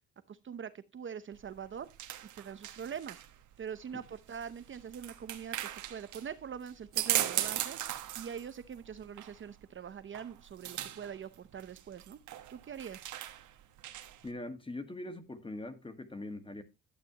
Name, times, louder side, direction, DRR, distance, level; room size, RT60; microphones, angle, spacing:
voice 1, 0.3-1.9 2.3-3.2 3.6-7.8 8.1-12.2 12.5-13.1, right 7 dB, 40° right, 0.7 m, -43 dB
sound 1, 1.3-14.3, right 12 dB, 75° right, 1.3 m, -39 dB
voice 2, 14.2-16.6, left 2 dB, 15° left, 1.6 m, -42 dB
11.5 x 8.2 x 2.9 m
cardioid pair, 90°, 30 cm